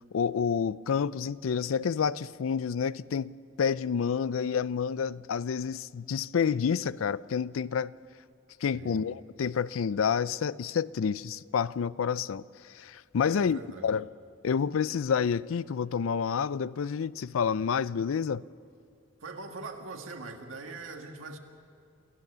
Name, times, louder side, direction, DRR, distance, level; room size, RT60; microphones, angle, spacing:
voice 1, 0.1-7.9 8.6-14.1 14.4-18.4, left 6 dB, 90° left, 0.4 m, -29 dB
voice 2, 8.7-9.1 13.2-14.0 19.2-21.4, right 3 dB, 90° right, 1.9 m, -42 dB
27.5 x 14.5 x 6.8 m
head